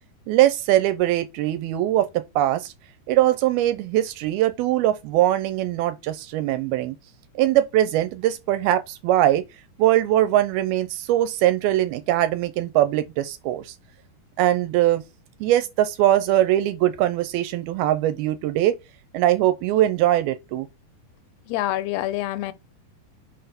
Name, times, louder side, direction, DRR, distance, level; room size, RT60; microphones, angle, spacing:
voice 1, 0.3-2.7 3.1-7.0 7.4-9.4 9.8-13.6 14.4-15.0 15.4-18.8 19.1-20.7, right 13 dB, 80° right, 2.6 m, -21 dB
voice 2, 21.5-22.5, left 14 dB, 85° left, 2.6 m, -26 dB
5.9 x 4.7 x 5.1 m
omnidirectional pair, 4.6 m